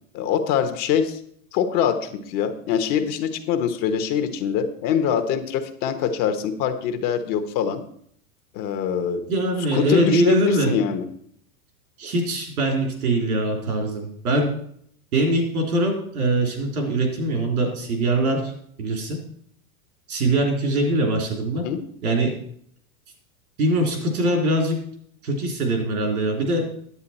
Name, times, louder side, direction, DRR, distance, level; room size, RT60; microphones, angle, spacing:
voice 1, 0.1-1.2 1.5-7.8 8.5-9.2 9.7-11.0 21.6-21.8, left 8 dB, 50° left, 8 dB, 1.2 m, -24 dB
voice 2, 9.3-10.7 12.0-14.5 15.1-18.5 18.8-19.2 20.1-21.6 22.0-22.3 23.6-24.7 25.2-26.6, right 1 dB, 85° right, 2 dB, 3.4 m, -22 dB
9.7 x 8.1 x 4.2 m, 0.66 s
hypercardioid pair, 115°, 43 cm